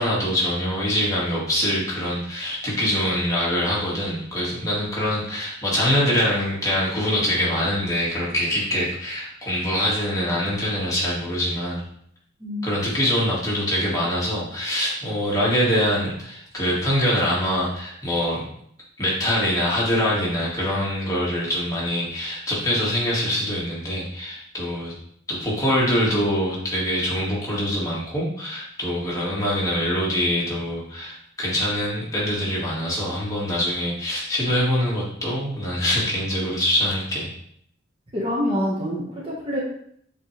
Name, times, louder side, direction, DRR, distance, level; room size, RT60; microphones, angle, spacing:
voice 1, 0.0-11.8 12.6-18.4 19.0-24.9 25.3-37.3, equal, 15° left, -6 dB, 2.2 m, -24 dB
voice 2, 12.4-12.7 38.1-39.6, equal, 30° right, -4 dB, 1.5 m, -26 dB
7.7 x 4.3 x 3.4 m, 0.67 s
head